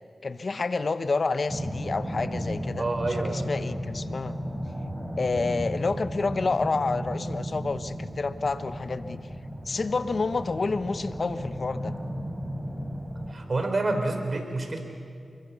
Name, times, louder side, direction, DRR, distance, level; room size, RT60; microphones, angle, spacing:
voice 1, 0.2-2.9 3.3-4.4 5.2-9.2 9.6-12.0, left 3 dB, 60° left, 12 dB, 0.9 m, -29 dB
sound 1, 1.5-13.3, equal, 15° right, 4.1 m, -34 dB
voice 2, 2.8-3.4 13.3-14.8, right 2 dB, 50° right, 5 dB, 4.2 m, -28 dB
28.5 x 22.5 x 7.0 m, 2.4 s
cardioid pair, 45°, 0 cm